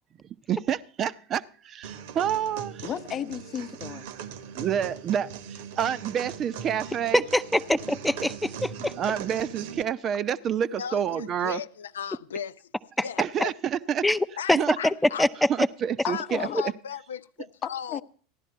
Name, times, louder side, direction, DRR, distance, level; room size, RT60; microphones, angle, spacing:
voice 1, 0.2-2.8 4.6-7.2 9.0-11.6 13.2-14.0 14.5-14.8 15.5-16.7, right 9 dB, 40° right, 0.6 m, -28 dB
sound 1, 1.8-9.8, right 7 dB, 65° right, 1.1 m, -40 dB
voice 2, 2.8-4.1 16.0-16.6 17.6-18.0, left 9 dB, 35° left, 0.8 m, -34 dB
voice 3, 7.1-8.9 13.0-13.1 14.0-14.2 14.5-14.6 14.8-15.7, left 1 dB, 5° left, 0.6 m, -24 dB
voice 4, 10.8-12.6 13.0-13.5 14.4-15.3 16.1-18.0, left 8 dB, 80° left, 0.5 m, -36 dB
15.5 x 11.5 x 4.5 m
hypercardioid pair, 85°, 0 cm